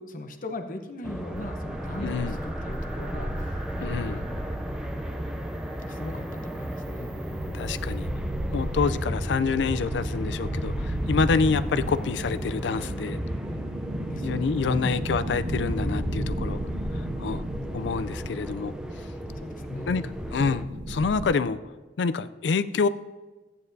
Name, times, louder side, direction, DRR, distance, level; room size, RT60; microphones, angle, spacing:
voice 1, 0.0-3.7 4.0-4.5 5.9-7.2 14.1-14.4 19.4-19.9, left 1 dB, 50° left, 6 dB, 0.9 m, -39 dB
sound 1, 1.0-20.6, equal, 5° right, 0.5 m, -36 dB
sound 2, 1.3-21.3, equal, 75° right, 1.6 m, -33 dB
voice 2, 2.0-2.4 3.8-4.3 7.5-8.1 8.5-13.2 14.2-16.6 16.9-17.5 17.7-18.7 19.9-21.6 22.0-22.9, left 5 dB, 75° left, 14 dB, 0.4 m, -27 dB
15.0 x 9.5 x 2.7 m, 1.3 s
head